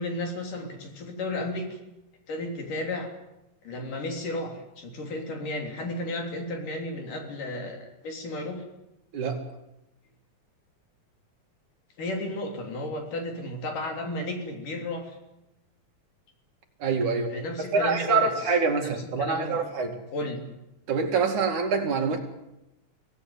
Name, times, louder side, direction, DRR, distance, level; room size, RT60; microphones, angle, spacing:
voice 1, 0.0-1.8 2.3-3.1 3.6-8.6 12.0-15.2 17.3-18.5 18.8-19.6 20.1-20.4, left 1 dB, 60° left, 3 dB, 4.9 m, -33 dB
voice 2, 16.8-17.3 17.7-19.9 20.9-22.2, right 4 dB, 55° right, 4 dB, 3.6 m, -25 dB
24.5 x 17.0 x 9.6 m, 0.92 s
omnidirectional pair, 4.2 m